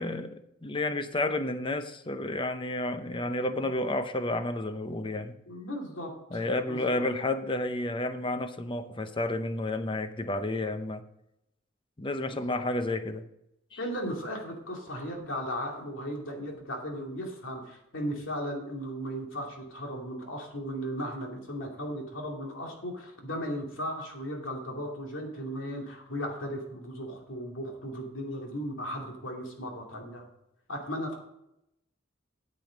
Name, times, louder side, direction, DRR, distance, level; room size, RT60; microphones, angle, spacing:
voice 1, 0.0-5.3 6.3-11.0 12.0-13.3 13.7-13.8, left 2 dB, 25° left, 9 dB, 0.7 m, -31 dB
voice 2, 5.5-7.0 12.3-12.6 13.8-30.2 30.7-31.2, equal, 85° left, 0 dB, 2.6 m, -36 dB
9.1 x 7.8 x 5.2 m, 0.83 s
head